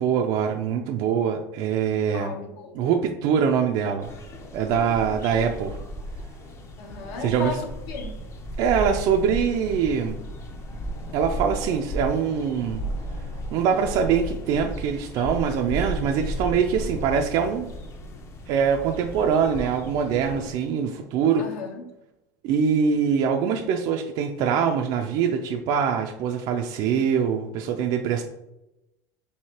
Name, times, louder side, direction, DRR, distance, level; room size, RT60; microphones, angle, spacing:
voice 1, 0.0-2.3 2.7-4.1 4.5-5.8 7.2-7.5 8.6-10.2 11.1-12.8 13.5-17.7 18.5-21.4 22.4-28.2, right 7 dB, 55° right, 3 dB, 0.4 m, -23 dB
voice 2, 2.1-2.9 6.8-8.2 21.4-21.8, left 4 dB, 70° left, 4 dB, 0.9 m, -35 dB
sound 1, 4.0-20.5, equal, 30° left, 0.5 m, -35 dB
4.6 x 2.8 x 2.8 m, 0.92 s
supercardioid pair, 125°, 9 cm